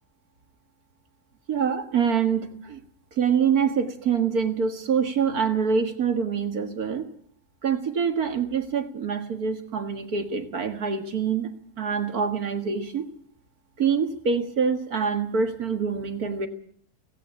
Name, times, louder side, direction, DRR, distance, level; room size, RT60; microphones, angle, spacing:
voice 1, 1.5-2.8 3.2-7.1 7.6-13.1 13.8-16.5, right 6 dB, 65° right, 7 dB, 2.2 m, -25 dB
17.0 x 16.5 x 10.0 m, 0.63 s
omnidirectional pair, 1.7 m